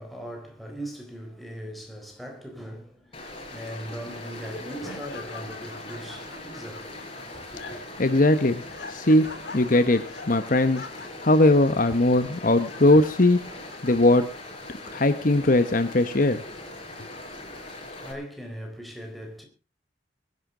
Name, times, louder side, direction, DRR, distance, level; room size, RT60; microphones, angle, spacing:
voice 1, 0.0-7.8 17.2-19.5, equal, ahead, 4.2 m, -40 dB
Stream, 3.1-18.1, left 2 dB, 30° left, 5.0 m, -41 dB
Laughter, 3.9-14.4, left 3 dB, 70° left, 3.4 m, -45 dB
voice 2, 8.0-8.6 8.9-13.4 13.8-14.3 14.9-16.4, left 2 dB, 50° left, 1.1 m, -20 dB
23.0 x 11.0 x 3.8 m
head